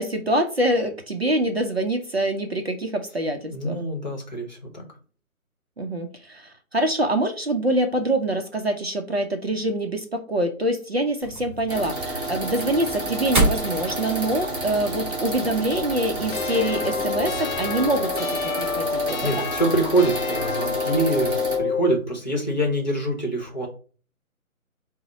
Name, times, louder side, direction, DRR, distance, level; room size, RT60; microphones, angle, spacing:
voice 1, 0.0-3.8 5.8-19.4, right 1 dB, 45° right, 5 dB, 0.5 m, -25 dB
voice 2, 3.5-4.8 19.2-23.7, right 2 dB, 30° left, 0 dB, 0.8 m, -25 dB
sound 1, 11.2-18.0, right 2 dB, 10° right, 2.3 m, -31 dB
sound 2, 11.7-21.6, right 2 dB, 25° right, 2.2 m, -30 dB
sound 3, 16.3-22.0, left 6 dB, 70° left, 0.6 m, -28 dB
4.9 x 2.0 x 4.0 m, 0.39 s
hypercardioid pair, 175°, 43 cm